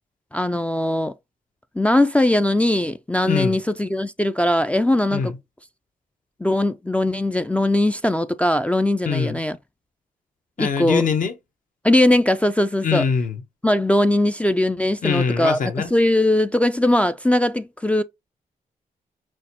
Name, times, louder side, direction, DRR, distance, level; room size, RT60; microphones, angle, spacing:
voice 1, 0.3-1.1 1.8-5.3 6.4-9.6 10.6-11.1 11.8-13.1 13.6-15.6 15.9-18.0, left 1 dB, 10° left, 0.3 m, -20 dB
voice 2, 3.3-3.6 5.1-5.3 9.1-9.4 10.6-11.3 12.8-13.4 15.0-15.9, left 6 dB, 65° left, 0.9 m, -23 dB
6.2 x 2.2 x 2.8 m
cardioid pair, 75°, 15 cm